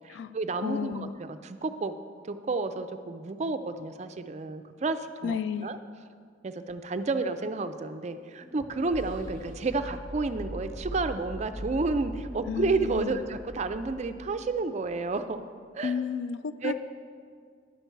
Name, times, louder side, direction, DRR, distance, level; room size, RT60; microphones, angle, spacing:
voice 1, 0.0-1.9 2.2-5.8 6.4-15.4 15.7-16.0 16.6-16.7, right 3 dB, 35° right, 10 dB, 0.4 m, -31 dB
voice 2, 0.6-1.1 5.2-5.8 12.5-13.2 15.8-16.7, left 6 dB, 70° left, 13 dB, 0.3 m, -32 dB
Sub Killer, 6.7-14.8, equal, 45° left, 1.1 m, -42 dB
10.5 x 6.8 x 4.6 m, 2.1 s
head